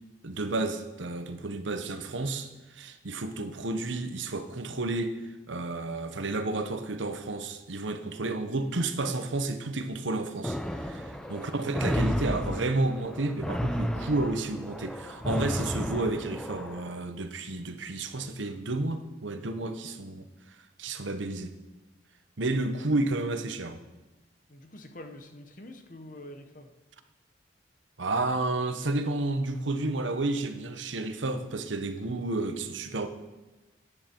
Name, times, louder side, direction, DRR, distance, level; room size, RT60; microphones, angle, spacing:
voice 1, 0.2-20.3 20.8-21.5 22.4-23.8 28.0-33.1, right 2 dB, 75° right, 9 dB, 1.0 m, -31 dB
sound 1, 10.4-16.9, equal, 5° left, 0.6 m, -32 dB
voice 2, 11.1-11.4 24.5-26.7, left 1 dB, 40° left, 6 dB, 1.1 m, -46 dB
14.5 x 10.0 x 4.5 m, 1.1 s
head